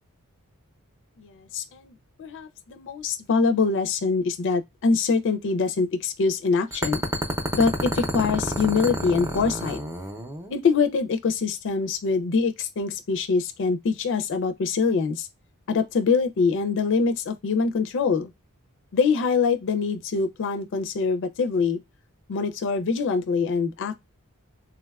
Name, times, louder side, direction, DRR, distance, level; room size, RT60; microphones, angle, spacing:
voice 1, 1.2-1.9 2.2-7.0 7.5-9.8 10.5-15.3 15.7-18.3 18.9-21.8 22.3-23.9, left 4 dB, 60° left, 0.4 m, -24 dB
sound 1, 6.7-10.5, right 1 dB, 10° right, 0.5 m, -29 dB
3.6 x 2.2 x 2.2 m
head